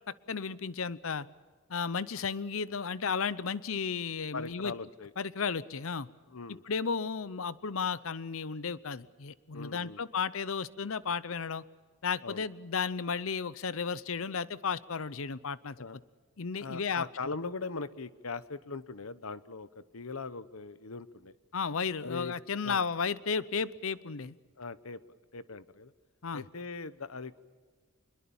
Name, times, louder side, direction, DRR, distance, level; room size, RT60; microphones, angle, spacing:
voice 1, 0.1-1.3 1.7-4.7 5.2-6.1 6.6-11.6 12.0-15.8 16.4-17.1 21.5-24.4 26.2-26.4, left 5 dB, 70° left, 17 dB, 0.7 m, -33 dB
voice 2, 4.3-5.1 6.3-6.6 9.5-10.0 12.2-12.5 15.8-16.0 16.6-21.3 22.0-22.3 22.6-22.8 24.6-25.0 25.3-25.9 26.3-27.4, left 4 dB, 85° left, 14 dB, 1.0 m, -40 dB
26.0 x 22.0 x 7.2 m, 1.5 s
head